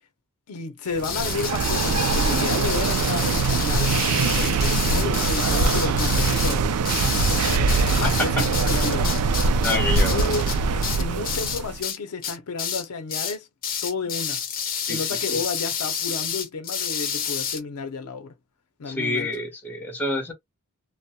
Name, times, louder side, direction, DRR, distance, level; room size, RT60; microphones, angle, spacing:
voice 1, 0.5-6.6 7.0-9.1 9.6-13.5 13.8-14.4 14.9-18.3 18.8-19.3, left 4 dB, 80° left, 0.5 m, -32 dB
sound 1, 1.0-12.0 12.2-12.8 13.1-13.4 13.6-17.6, left 8 dB, 40° left, 0.6 m, -29 dB
sound 2, 1.0-11.8, right 4 dB, 80° right, 0.3 m, -23 dB
voice 2, 8.0-8.5 9.3-10.3 14.9-15.0 15.3-15.4 18.9-20.3, left 2 dB, 10° left, 0.9 m, -28 dB
2.2 x 2.0 x 2.7 m
head